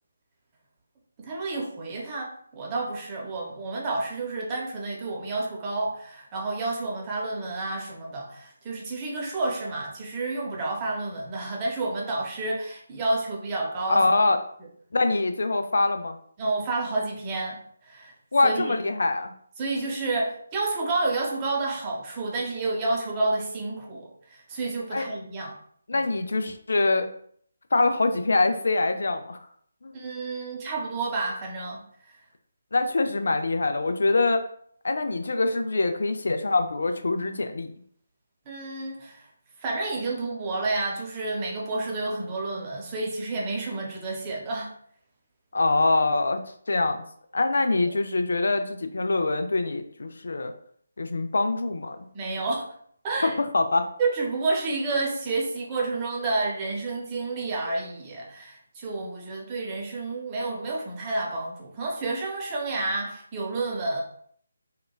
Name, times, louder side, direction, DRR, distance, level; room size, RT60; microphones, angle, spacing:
voice 1, 1.2-14.0 16.4-18.1 18.4-18.8 19.6-25.5 25.9-26.1 29.9-31.8 38.5-39.3 39.6-44.7 52.1-52.6 53.0-53.4 54.0-64.0, right 3 dB, 20° right, -2 dB, 0.6 m, -30 dB
voice 2, 13.9-14.4 14.9-16.2 18.3-19.3 24.9-25.0 25.9-27.1 27.7-29.4 29.8-30.0 32.7-34.4 34.8-37.7 45.5-46.4 46.7-47.1 47.3-50.5 51.0-52.0 53.2-53.9, left 3 dB, 60° left, 7 dB, 0.3 m, -24 dB
2.9 x 2.2 x 2.3 m, 0.62 s
figure-of-eight pair, 150°, 0 cm